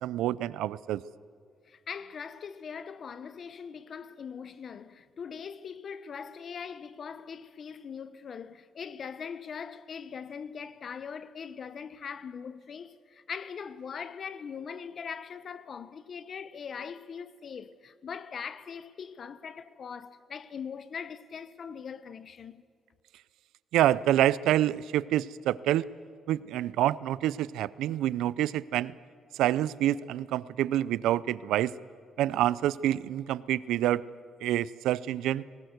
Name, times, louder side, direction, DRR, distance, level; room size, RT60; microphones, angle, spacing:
voice 1, 0.0-1.0 23.7-25.8 26.3-28.9 29.3-31.7 32.2-34.0 34.4-35.4, right 13 dB, 90° right, 0.4 m, -27 dB
voice 2, 1.7-22.6, left 6 dB, 50° left, 1.0 m, -41 dB
19.5 x 18.5 x 8.0 m
cardioid pair, 90°, 0 cm